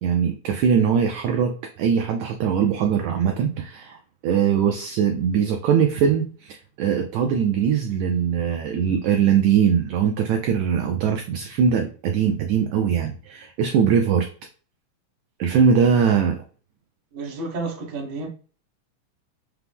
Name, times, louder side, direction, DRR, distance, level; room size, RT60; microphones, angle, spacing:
voice 1, 0.0-4.0 4.2-14.3 15.4-16.4, right 7 dB, 85° right, 1.6 m, -21 dB
voice 2, 17.1-18.3, right 3 dB, 65° right, 1.0 m, -31 dB
5.8 x 2.0 x 3.4 m
omnidirectional pair, 3.8 m